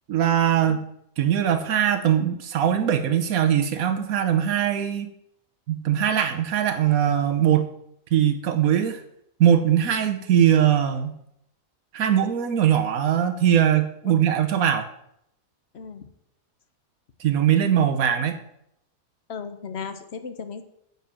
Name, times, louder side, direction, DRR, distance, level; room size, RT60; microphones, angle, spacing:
voice 1, 0.1-0.9 1.2-5.1 5.7-7.7 8.1-9.0 9.4-11.2 11.9-14.9 17.2-18.4, right 9 dB, 85° right, 8 dB, 1.2 m, -21 dB
voice 2, 15.7-16.1 19.3-20.6, left 6 dB, 55° left, 9 dB, 1.1 m, -36 dB
9.6 x 5.5 x 7.5 m, 0.76 s
omnidirectional pair, 1.5 m